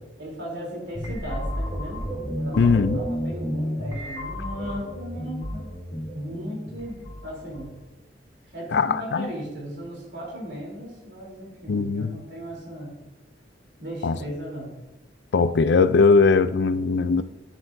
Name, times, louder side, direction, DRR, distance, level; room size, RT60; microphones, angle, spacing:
voice 1, 0.2-2.0 2.3-5.6 6.1-7.7 8.5-13.0 13.8-14.7, equal, 70° right, 3.4 m, -36 dB
sound 1, 0.9-7.8, equal, 30° left, 2.8 m, -32 dB
voice 2, 2.6-3.0 8.7-9.3 11.7-12.2 14.0-14.2 15.3-17.2, left 4 dB, 65° left, 0.4 m, -20 dB
10.0 x 9.6 x 2.7 m
head